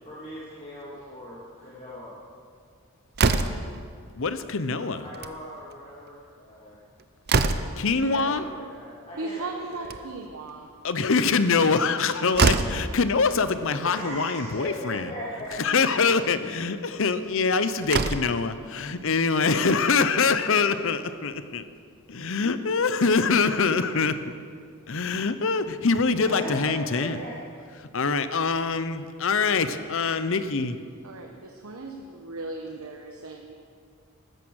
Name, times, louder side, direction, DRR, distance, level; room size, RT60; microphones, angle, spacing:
voice 1, 0.0-2.1 4.7-6.8 8.1-9.9 13.8-15.5 26.2-27.3, left 1 dB, 30° left, -7 dB, 2.5 m, -38 dB
Slam, 3.1-3.8 5.0-5.4 5.7-5.8 6.1-6.2 6.7-7.9 9.6-10.3 11.9-12.0 12.3-12.9 14.0-14.1 14.5-14.6 15.4-15.6 17.3-17.4 17.8-18.4, right 4 dB, 45° right, 0.7 m, -24 dB
voice 2, 4.1-5.1 7.8-8.5 10.8-15.0 15.6-21.7 22.1-24.2 24.9-27.2 27.8-30.8, left 4 dB, 60° left, 12 dB, 0.8 m, -24 dB
voice 3, 9.2-10.7 31.0-33.5, right 3 dB, 70° right, 2 dB, 1.1 m, -37 dB
15.0 x 13.5 x 6.4 m, 2.2 s
head